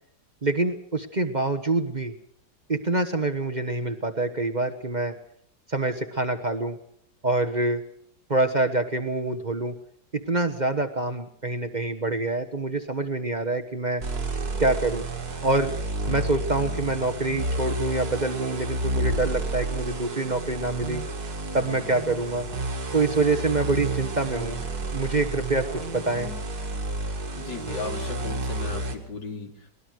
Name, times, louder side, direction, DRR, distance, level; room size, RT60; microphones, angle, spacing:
voice 1, 0.4-2.1 2.7-5.1 5.7-6.8 7.2-7.8 8.3-9.7 10.1-14.0 14.6-15.0 15.4-15.7 16.1-21.0 21.5-22.5 22.9-24.6 24.9-26.3, right 2 dB, 30° right, 6 dB, 1.3 m, -26 dB
sound 1, 14.0-29.0, right 2 dB, 60° right, 2.6 m, -31 dB
voice 2, 27.3-29.7, left 4 dB, 80° left, 4 dB, 3.4 m, -36 dB
22.5 x 19.5 x 6.4 m, 0.63 s
omnidirectional pair, 1.8 m